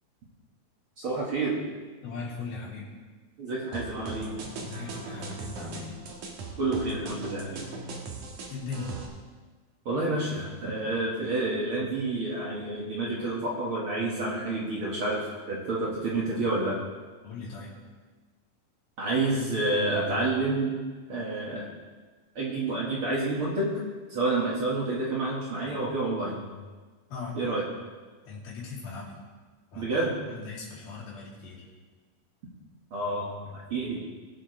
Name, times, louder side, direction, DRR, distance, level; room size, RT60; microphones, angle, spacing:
voice 1, 1.0-1.6 3.4-4.4 6.6-7.7 9.9-16.8 19.0-20.8 21.1-21.7 22.4-26.5 27.3-27.6 29.7-30.2 32.9-34.1, right 2 dB, 50° right, -5 dB, 1.9 m, -29 dB
voice 2, 2.0-2.9 4.6-6.1 8.5-8.9 17.2-17.8 27.1-27.4 28.3-29.2 29.7-29.9 30.2-31.7, left 4 dB, 85° left, -5 dB, 4.6 m, -39 dB
sound 1, 3.7-9.1, right 3 dB, 65° right, 2.8 m, -39 dB
22.0 x 7.6 x 3.2 m, 1.4 s
omnidirectional pair, 4.2 m